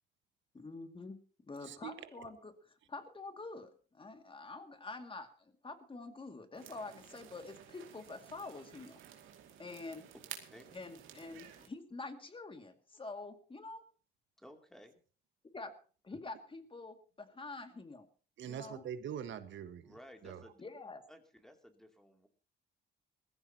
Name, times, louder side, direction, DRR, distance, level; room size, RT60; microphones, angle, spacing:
voice 1, 0.5-9.0 9.6-10.1 10.7-13.9 15.5-15.7 16.0-18.1 18.4-18.8 20.6-21.0, left 3 dB, 25° left, 7 dB, 2.3 m, -47 dB
sound 1, 6.5-11.7, right 10 dB, 85° right, 2.5 m, -53 dB
voice 2, 14.4-15.0 19.8-20.6 21.1-22.3, equal, ahead, 4 dB, 2.9 m, -56 dB
voice 3, 18.4-19.9 20.2-20.4, right 9 dB, 70° right, 10 dB, 1.6 m, -43 dB
21.0 x 15.0 x 2.9 m, 0.39 s
cardioid pair, 90°, 20 cm